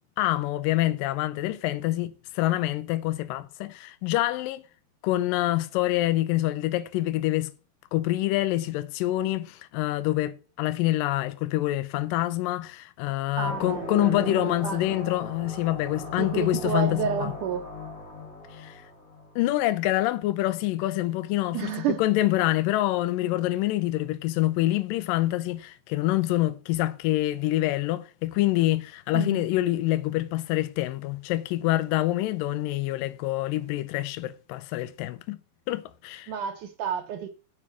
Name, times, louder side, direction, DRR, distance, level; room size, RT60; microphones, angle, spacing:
voice 1, 0.2-4.6 5.0-7.5 7.9-17.3 18.5-18.8 19.4-35.4 35.7-36.3, left 16 dB, 90° left, 1.9 m, -26 dB
sound 1, 13.4-19.6, left 3 dB, 40° left, 1.2 m, -38 dB
voice 2, 13.4-15.0 16.2-17.7 21.5-22.0 29.1-29.4 36.3-37.3, right 8 dB, 75° right, 1.9 m, -30 dB
7.3 x 7.1 x 8.1 m
omnidirectional pair, 4.8 m